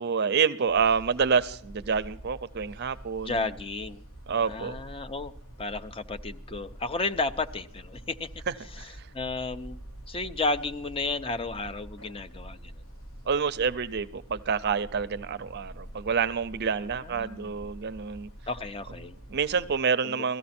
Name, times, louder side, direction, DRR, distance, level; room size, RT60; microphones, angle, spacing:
voice 1, 0.0-3.5 4.3-4.8 8.5-9.1 13.3-18.3 19.3-20.4, right 6 dB, 50° right, 13 dB, 0.5 m, -28 dB
sound 1, 0.6-19.8, right 1 dB, 70° left, 1.7 m, -46 dB
voice 2, 3.2-4.0 4.4-5.3 5.6-8.3 8.8-9.8 10.1-12.8 17.0-17.6 18.5-19.2 20.0-20.2, left 3 dB, 25° left, 10 dB, 0.6 m, -33 dB
17.0 x 14.0 x 4.3 m, 0.65 s
head